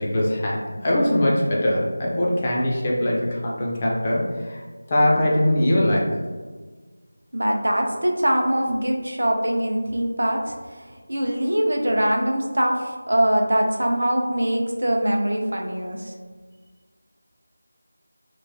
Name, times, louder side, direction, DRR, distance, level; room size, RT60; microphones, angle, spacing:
voice 1, 0.0-4.6 4.9-6.1, left 1 dB, 20° left, -4 dB, 0.3 m, -21 dB
voice 2, 7.3-16.1, right 1 dB, 85° right, 2 dB, 0.4 m, -23 dB
3.0 x 2.2 x 2.5 m, 1.4 s
figure-of-eight pair, 175°, 0 cm